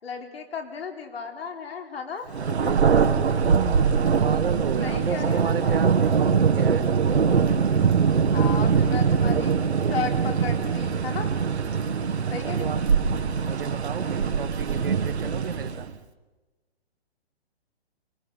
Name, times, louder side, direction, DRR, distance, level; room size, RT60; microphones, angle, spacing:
voice 1, 0.0-2.9 4.8-5.8 8.3-9.5 9.9-11.3 12.3-12.8, left 5 dB, 65° left, 3 dB, 3.6 m, -34 dB
Thunder, 2.3-15.9, right 6 dB, 85° right, 1.7 m, -22 dB
voice 2, 3.4-6.9 12.4-12.8 13.4-15.9, right 8 dB, 60° right, 10 dB, 1.6 m, -32 dB
28.0 x 20.0 x 5.5 m, 1.2 s
hypercardioid pair, 150°, 32 cm